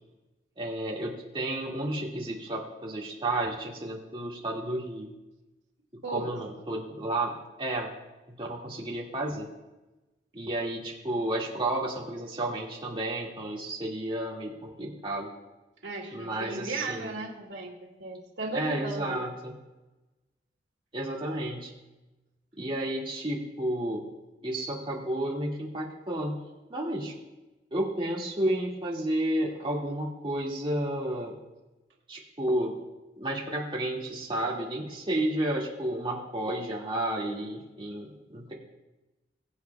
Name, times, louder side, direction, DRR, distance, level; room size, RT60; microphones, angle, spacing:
voice 1, 0.6-5.1 6.1-7.3 7.6-7.9 8.3-9.5 10.3-15.3 16.1-17.1 18.5-19.5 20.9-21.7 22.6-24.0 24.4-26.4 26.7-27.1 27.7-31.4 32.1-32.7 33.2-38.5, right 1 dB, 30° right, -3 dB, 2.1 m, -31 dB
voice 2, 15.8-19.2, right 2 dB, 85° right, 0 dB, 2.2 m, -36 dB
22.0 x 8.2 x 2.3 m, 1.0 s
head